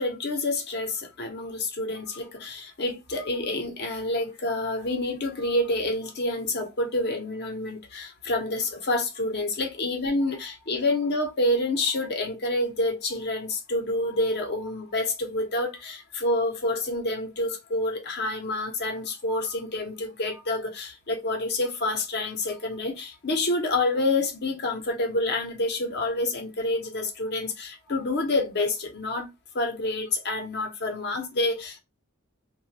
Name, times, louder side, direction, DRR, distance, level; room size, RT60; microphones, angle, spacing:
voice 1, 0.0-29.3 29.5-31.8, left 2 dB, 50° left, 0.8 m, -28 dB
2.9 x 2.3 x 2.8 m
head